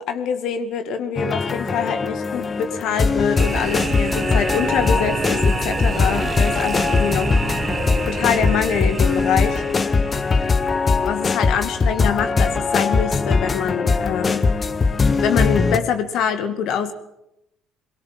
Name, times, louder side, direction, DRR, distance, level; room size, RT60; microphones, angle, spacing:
voice 1, 0.0-7.3 8.0-9.6 11.0-14.5 15.2-16.9, left 7 dB, 60° left, 8 dB, 2.2 m, -24 dB
sound 1, 1.2-15.8, left 4 dB, 30° left, 1.7 m, -21 dB
sound 2, 3.4-11.3, right 5 dB, 30° right, 1.3 m, -29 dB
23.0 x 22.0 x 7.8 m, 0.86 s
figure-of-eight pair, 55°, 0 cm